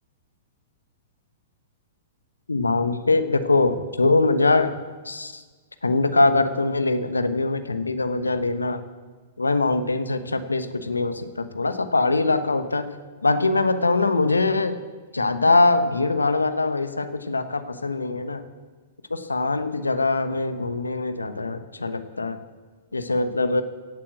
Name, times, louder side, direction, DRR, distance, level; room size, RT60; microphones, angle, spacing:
voice 1, 2.5-4.7 5.0-5.4 5.8-8.8 9.4-12.9 13.2-14.8 15.1-18.4 19.1-22.4 22.9-23.6, left 3 dB, 85° left, 10 dB, 1.1 m, -22 dB
16.0 x 8.6 x 7.7 m, 1.4 s
figure-of-eight pair, 105°, 0 cm